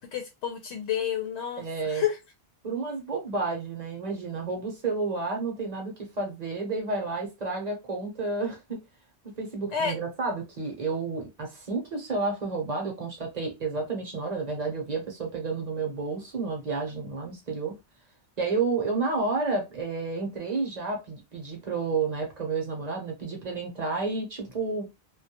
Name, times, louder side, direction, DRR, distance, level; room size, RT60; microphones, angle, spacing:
voice 1, 0.1-2.2 9.7-10.0, left 8 dB, 90° left, 0.9 m, -30 dB
voice 2, 1.6-2.0 2.6-8.8 9.2-17.7 18.4-24.9, right 3 dB, 45° right, 0.7 m, -31 dB
2.2 x 2.1 x 2.8 m
omnidirectional pair, 1.1 m